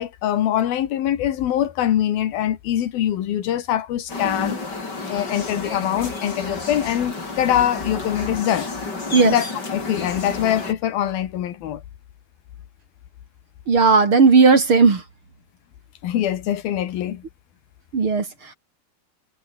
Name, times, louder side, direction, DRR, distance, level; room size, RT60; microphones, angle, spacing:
voice 1, 0.0-4.6 5.1-8.7 9.2-11.8 16.0-17.2, left 11 dB, 80° left, 3.5 m, -23 dB
sound 1, 4.1-10.7, left 3 dB, 25° left, 4.7 m, -31 dB
voice 2, 13.7-15.0 17.9-18.5, right 4 dB, 40° right, 3.4 m, -15 dB
omnidirectional pair, 4.2 m